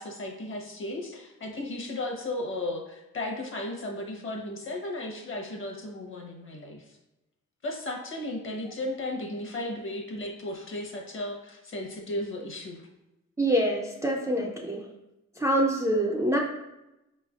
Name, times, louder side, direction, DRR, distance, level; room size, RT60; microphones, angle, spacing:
voice 1, 0.0-6.8 7.6-12.8, left 1 dB, 40° left, 2 dB, 0.9 m, -35 dB
voice 2, 13.4-14.8 15.4-16.4, right 1 dB, 10° right, -1 dB, 0.4 m, -25 dB
4.8 x 3.2 x 2.4 m, 0.94 s
cardioid pair, 90°, 30 cm